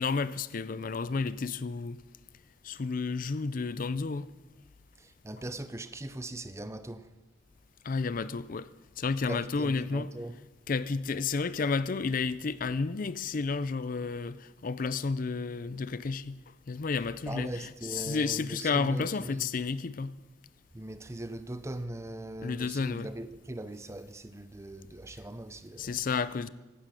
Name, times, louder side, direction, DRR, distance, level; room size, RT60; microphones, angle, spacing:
voice 1, 0.0-2.0 2.6-4.3 7.8-8.7 9.0-10.1 10.7-16.4 16.7-20.1 22.4-23.1 25.8-26.5, left 4 dB, 45° left, 0.5 m, -31 dB
voice 2, 5.0-7.1 9.3-10.4 17.3-19.5 20.7-26.0, right 1 dB, 15° right, 0.6 m, -40 dB
16.0 x 12.5 x 6.5 m
head